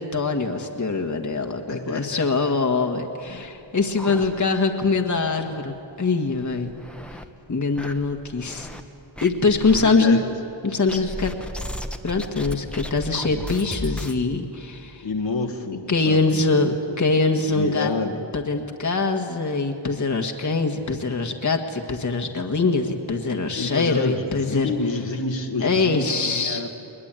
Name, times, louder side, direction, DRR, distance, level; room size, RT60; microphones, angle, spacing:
voice 1, 0.0-6.7 7.5-8.7 9.2-10.2 10.6-11.3 12.0-15.1 15.9-17.9 18.3-24.7 25.6-26.6, left 3 dB, 40° left, 4 dB, 1.7 m, -23 dB
voice 2, 1.7-2.3 4.1-4.5 9.8-10.3 15.0-17.1 17.5-18.2 23.5-26.7, left 3 dB, 70° left, 1 dB, 2.0 m, -29 dB
sound 1, 3.3-4.8 5.2-5.3 5.6-5.7 6.3-7.3 7.8-8.8 9.2-9.8 10.9-14.2, left 1 dB, ahead, 1.4 m, -35 dB
21.5 x 21.0 x 9.0 m, 2.8 s
cardioid pair, 65°, 47 cm